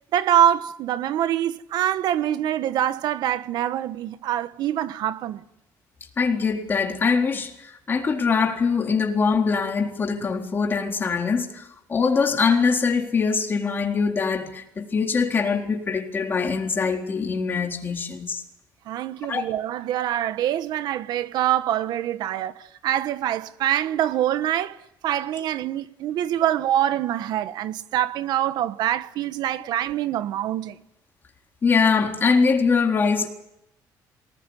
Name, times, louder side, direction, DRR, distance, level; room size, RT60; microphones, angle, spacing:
voice 1, 0.1-5.4 18.9-24.8 25.0-30.8, right 11 dB, 70° right, 1.2 m, -25 dB
voice 2, 6.2-18.4 19.3-19.4 31.6-33.3, left 5 dB, 30° left, 4.0 m, -23 dB
28.5 x 20.0 x 9.9 m
cardioid pair, 135°, 7 cm